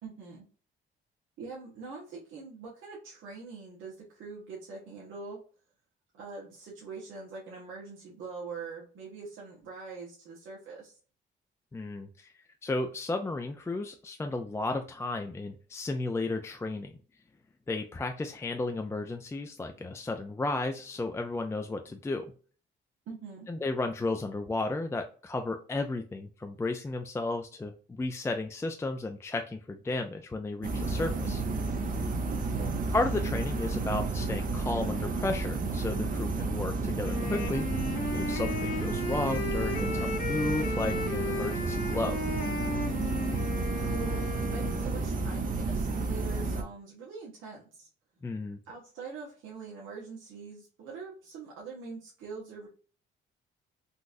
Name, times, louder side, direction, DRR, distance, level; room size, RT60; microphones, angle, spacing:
voice 1, 0.0-0.5 1.4-5.4 6.1-11.0 23.1-23.5 32.5-32.8 42.9-43.3 43.9-44.3 44.5-47.9 48.6-52.7, right 4 dB, 80° right, -4 dB, 1.1 m, -43 dB
voice 2, 11.7-12.3 12.6-16.9 17.7-22.3 23.5-31.4 32.9-37.7 38.1-42.2 48.2-48.6, left 2 dB, 15° left, 5 dB, 0.3 m, -33 dB
sound 1, 30.6-46.6, right 3 dB, 45° right, 0.7 m, -31 dB
Wind instrument woodwind instrument, 37.0-44.9, left 3 dB, 50° left, 1.1 m, -35 dB
3.9 x 2.4 x 2.5 m, 0.40 s
cardioid pair, 90°, 20 cm